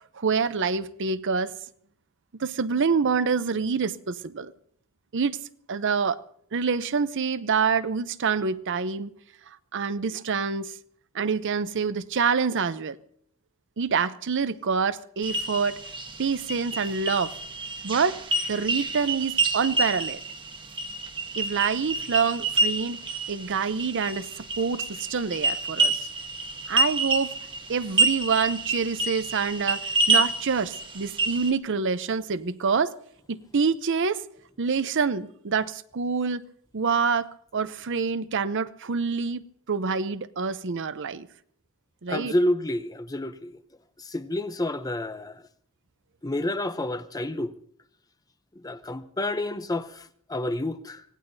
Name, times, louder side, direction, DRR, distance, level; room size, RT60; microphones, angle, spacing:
voice 1, 0.1-1.5 2.4-4.5 5.1-5.4 5.7-6.2 6.5-9.1 9.7-10.7 11.1-13.0 13.8-15.8 16.2-17.3 17.8-18.2 18.5-20.2 21.4-23.0 23.3-26.1 26.7-27.3 27.7-32.9 33.3-34.2 34.6-36.4 36.7-41.3 42.0-42.3, right 5 dB, 55° right, 0.6 m, -26 dB
sound 1, 15.2-31.5, right 3 dB, 20° right, 1.1 m, -28 dB
voice 2, 42.1-43.6 44.0-45.4 46.2-47.5 48.6-51.0, left 1 dB, 15° left, 0.6 m, -29 dB
25.0 x 18.0 x 2.7 m
head